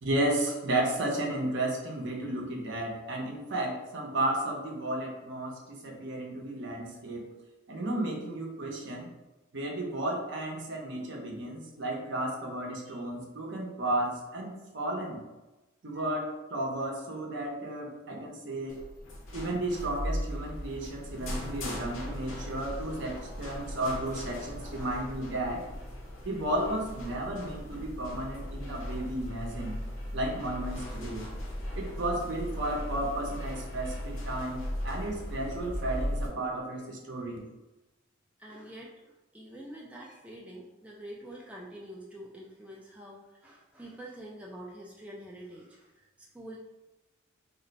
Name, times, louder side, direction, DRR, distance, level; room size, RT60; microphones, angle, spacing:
voice 1, 0.0-7.3 7.7-9.1 9.5-15.2 15.8-18.8 19.3-25.6 26.2-29.8 30.1-31.3 31.7-37.4, right 1 dB, 65° right, 0 dB, 0.7 m, -33 dB
sound 1, 18.7-36.3, equal, 75° left, 0.7 m, -38 dB
voice 2, 38.4-46.6, right 1 dB, 5° right, -3 dB, 0.3 m, -46 dB
2.5 x 2.1 x 3.9 m, 1.1 s
head